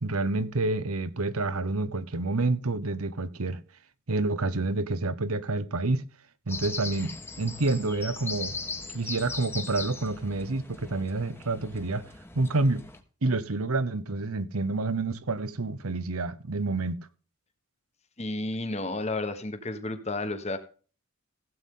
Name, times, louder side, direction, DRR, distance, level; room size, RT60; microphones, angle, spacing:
voice 1, 0.0-3.6 4.1-6.0 6.5-8.6 8.9-12.0 12.3-12.8 13.2-17.0, right 2 dB, 90° right, 1.0 m, -28 dB
sound 1, 6.5-13.0, left 3 dB, 10° left, 1.2 m, -39 dB
voice 2, 18.2-20.6, left 2 dB, 30° left, 1.4 m, -32 dB
16.0 x 8.3 x 3.8 m
head